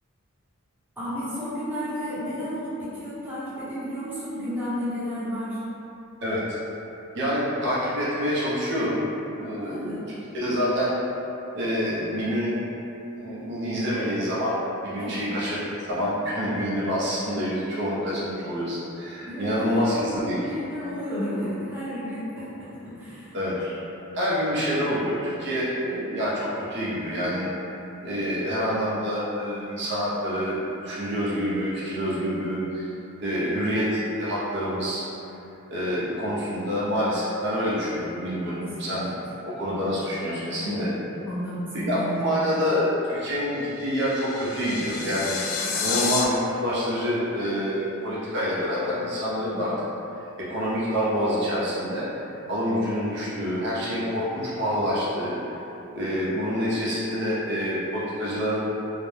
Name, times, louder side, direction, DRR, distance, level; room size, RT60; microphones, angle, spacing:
voice 1, 1.0-5.6 9.6-10.1 15.0-15.2 19.3-23.3 38.6-39.0 40.6-41.0 41.3-42.4 45.6-45.8 49.5-49.6, equal, 10° right, -12 dB, 0.6 m, -32 dB
voice 2, 6.2-6.6 7.1-9.0 9.3-10.9 11.5-12.6 13.1-14.5 14.8-15.6 15.9-20.4 23.3-23.8 24.1-27.5 28.0-32.9 33.2-35.1 35.7-40.9 41.7-45.4 45.8-49.7 50.4-55.4 55.9-58.6, equal, 55° right, -8 dB, 0.5 m, -27 dB
sound 1, 43.6-46.2, left 5 dB, 75° left, 0.3 m, -29 dB
2.4 x 2.0 x 3.1 m, 2.9 s
head